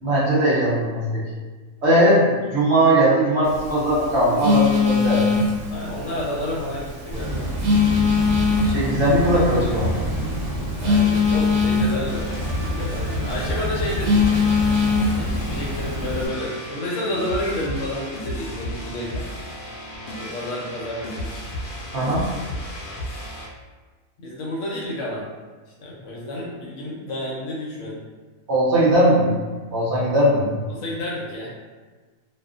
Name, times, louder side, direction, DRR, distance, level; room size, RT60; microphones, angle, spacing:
voice 1, 0.0-1.2 1.8-5.3 8.6-9.9 21.9-22.2 28.5-29.3 29.7-30.5, right 1 dB, 60° right, -7 dB, 0.9 m, -19 dB
Telephone, 3.4-16.3, left 4 dB, 75° right, 1.0 m, -23 dB
voice 2, 5.7-7.5 10.8-12.3 12.5-14.4 15.2-19.3 20.1-21.5 24.2-25.3 25.8-28.0 30.7-31.6, left 1 dB, 65° left, -4 dB, 0.9 m, -30 dB
sound 1, 7.1-16.2, equal, 35° right, 0.3 m, -28 dB
sound 2, 12.1-23.5, left 1 dB, 85° left, 0.4 m, -33 dB
2.5 x 2.4 x 2.4 m, 1.3 s
omnidirectional pair, 1.5 m